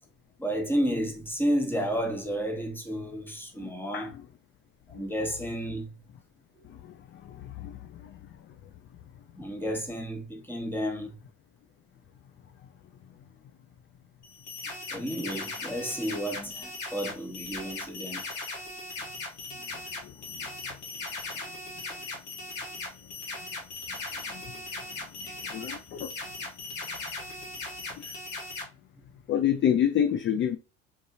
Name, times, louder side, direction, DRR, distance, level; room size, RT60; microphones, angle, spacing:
voice 1, 0.4-4.1 4.9-5.9 9.4-11.1 14.9-18.3 25.2-25.3, equal, 5° left, 1.0 m, -31 dB
voice 2, 3.6-4.1 7.6-7.7 25.5-26.1 29.3-30.6, left 9 dB, 35° left, 0.4 m, -26 dB
sound 1, 14.2-28.6, left 3 dB, 80° left, 1.2 m, -39 dB
3.8 x 2.6 x 2.7 m
hypercardioid pair, 75°, 38 cm